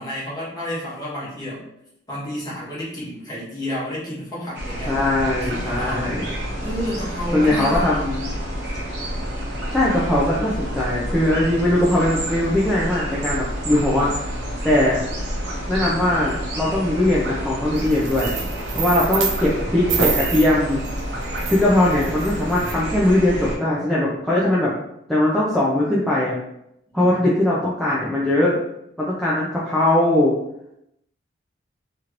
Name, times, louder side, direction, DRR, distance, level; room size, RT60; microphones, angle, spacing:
voice 1, 0.0-1.6 2.1-5.0 5.4-6.2 6.6-8.1 26.9-27.5, left 1 dB, 20° left, -8 dB, 1.1 m, -31 dB
sound 1, 4.5-23.6, equal, 60° right, 0.9 m, -29 dB
voice 2, 4.9-6.2 7.3-8.3 9.7-14.1 14.6-15.0 15.7-18.3 18.7-20.8 21.5-24.7 25.1-26.3 26.9-28.6 29.0-30.3, left 1 dB, ahead, -8 dB, 0.4 m, -20 dB
sound 2, 17.8-19.5 19.9-22.7, right 5 dB, 75° right, 0.5 m, -28 dB
3.0 x 2.9 x 2.5 m, 0.80 s
head